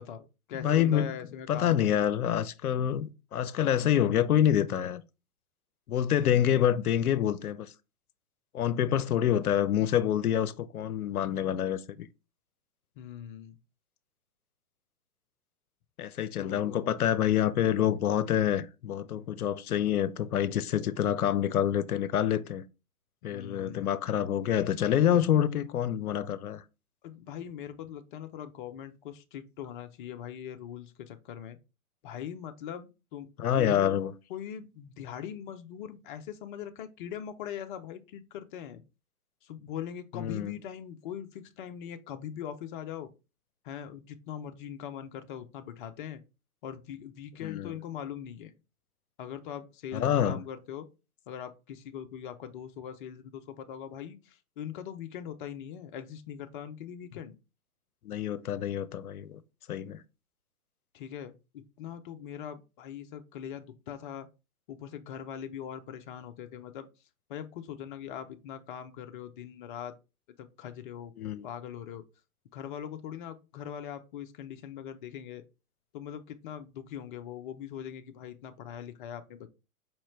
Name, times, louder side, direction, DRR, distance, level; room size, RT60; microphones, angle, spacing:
voice 1, 0.0-2.0 13.0-13.6 16.4-17.0 23.2-23.9 24.9-25.2 27.0-31.6 32.0-34.0 34.3-38.8 39.4-43.1 43.6-46.2 46.6-48.5 49.2-50.9 51.3-57.3 60.9-64.3 64.7-66.9 67.3-70.0 70.4-71.1 71.4-72.0 72.5-75.4 75.9-79.5, left 9 dB, 35° left, 0.5 m, -41 dB
voice 2, 0.6-1.1 1.5-5.0 5.9-7.7 8.5-12.1 16.0-22.6 23.2-26.6 33.4-34.1 40.1-40.5 47.4-47.7 49.9-50.4 58.0-59.4 59.7-60.0 71.2-71.5, left 10 dB, 85° left, 0.6 m, -27 dB
5.0 x 3.1 x 3.0 m
hypercardioid pair, 125°, 44 cm